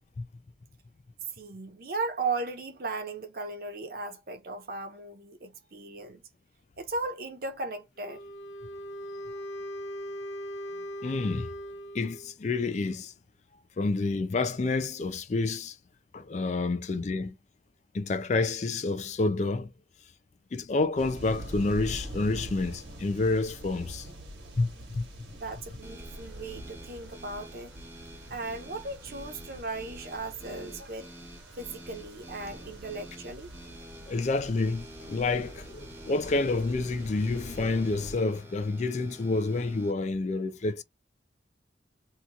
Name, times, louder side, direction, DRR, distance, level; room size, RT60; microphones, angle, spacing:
voice 1, 1.3-6.2 6.8-8.2 25.3-27.7 28.3-31.1 31.6-33.5, right 3 dB, 55° right, 0.8 m, -36 dB
Wind instrument woodwind instrument, 8.0-12.3, equal, 85° left, 0.7 m, -39 dB
voice 2, 11.0-11.5 11.9-13.1 13.8-15.8 16.1-17.4 17.9-19.7 20.5-24.1 24.6-25.1 34.1-40.8, left 3 dB, 40° left, 0.4 m, -29 dB
sound 1, 21.0-38.1, right 1 dB, 75° right, 1.2 m, -45 dB
sound 2, 25.8-39.9, equal, 10° right, 0.7 m, -49 dB
2.9 x 2.3 x 3.8 m
head